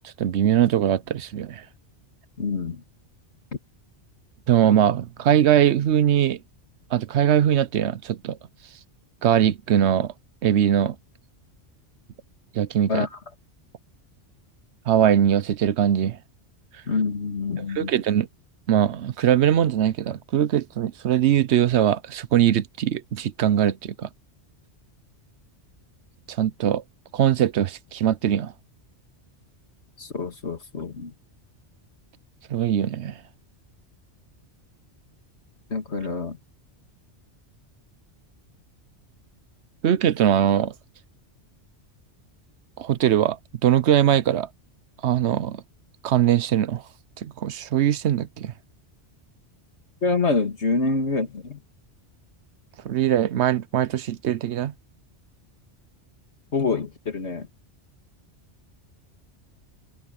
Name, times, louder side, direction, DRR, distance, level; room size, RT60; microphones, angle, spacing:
voice 1, 0.2-1.6 4.5-6.4 6.9-8.4 9.2-10.1 10.4-11.0 12.5-13.1 14.9-16.2 17.7-18.3 18.7-24.1 26.4-26.8 27.1-28.5 32.5-33.2 39.8-40.7 42.8-43.4 43.6-44.5 45.0-45.6 46.0-46.8 47.2-48.5 52.8-54.7, right 10 dB, 75° right, 1.0 m, -21 dB
voice 2, 2.4-2.8 12.9-13.1 16.9-17.9 30.0-31.1 35.7-36.4 50.0-51.6 56.5-57.5, left 4 dB, 70° left, 2.5 m, -26 dB
omnidirectional pair, 1.2 m